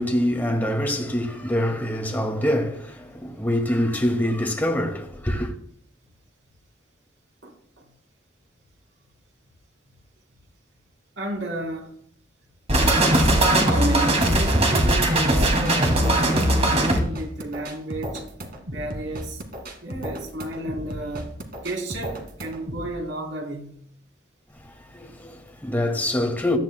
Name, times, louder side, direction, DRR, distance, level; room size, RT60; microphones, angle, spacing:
voice 1, 0.0-5.5 24.9-26.6, left 1 dB, 10° left, 2.1 m, -25 dB
voice 2, 7.4-7.9 11.2-11.9 13.6-18.2 18.7-19.4 19.8-21.3 21.6-23.9, right 1 dB, 80° right, 4.2 m, -32 dB
sound 1, 12.7-17.0, right 1 dB, 35° right, 2.6 m, -19 dB
sound 2, 15.1-22.9, equal, 55° right, 2.2 m, -35 dB
17.0 x 13.5 x 2.3 m
head